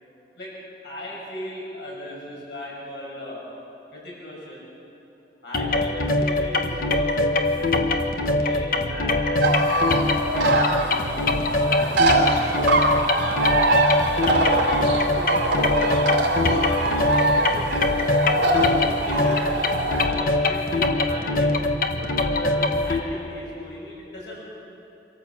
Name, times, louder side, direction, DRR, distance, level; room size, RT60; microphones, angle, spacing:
voice 1, 0.8-3.4 3.9-4.7 5.4-9.5 10.1-13.5 13.9-19.6 20.0-21.6 21.9-24.4, left 1 dB, 80° left, -5 dB, 6.6 m, -38 dB
sound 1, 5.5-23.0, left 2 dB, 50° left, 1.2 m, -23 dB
sound 2, 9.4-20.1, right 1 dB, 90° right, 3.3 m, -23 dB
25.5 x 14.0 x 7.4 m, 2.9 s
head